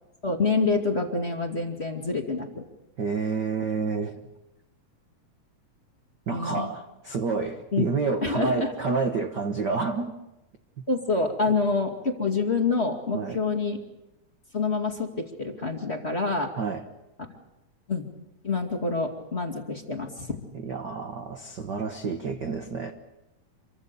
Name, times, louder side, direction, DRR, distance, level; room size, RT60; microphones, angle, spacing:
voice 1, 0.2-2.6 6.3-6.7 7.7-7.8 8.2-8.7 10.9-13.8 14.5-16.5 17.9-18.1 18.4-20.4, left 4 dB, 20° left, 3 dB, 2.2 m, -27 dB
voice 2, 3.0-4.2 6.3-10.1 13.1-13.4 16.6-16.8 20.6-22.9, right 4 dB, 55° right, 5 dB, 1.2 m, -29 dB
27.5 x 24.0 x 6.9 m, 0.94 s
omnidirectional pair, 3.7 m